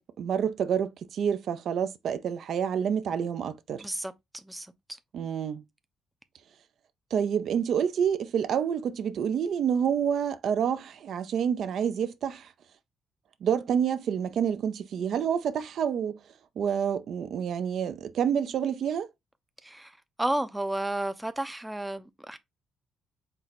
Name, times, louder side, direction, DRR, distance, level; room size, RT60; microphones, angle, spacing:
voice 1, 0.0-3.8 5.1-5.6 7.1-12.5 13.4-16.2 16.6-19.1, right 8 dB, 65° right, 0.4 m, -28 dB
voice 2, 3.8-5.0 19.6-22.4, right 1 dB, 10° right, 0.5 m, -33 dB
4.4 x 2.1 x 4.0 m
cardioid pair, 90°, 0 cm